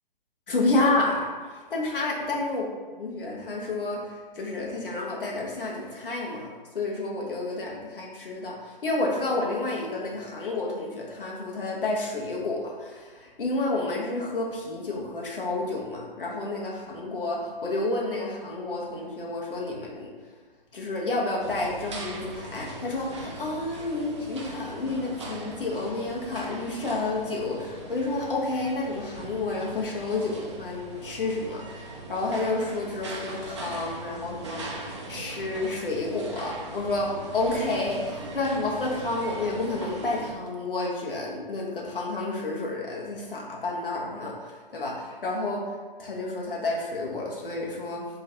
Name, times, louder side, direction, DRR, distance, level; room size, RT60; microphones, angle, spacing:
voice 1, 0.5-1.2 1.5-2.7 3.0-20.1 20.7-34.8 35.1-45.6 46.0-48.1, left 2 dB, 65° left, -2 dB, 1.0 m, -30 dB
sound 1, 21.4-40.3, right 2 dB, 30° right, 0.4 m, -40 dB
3.1 x 2.5 x 4.2 m, 1.4 s
figure-of-eight pair, 140°, 29 cm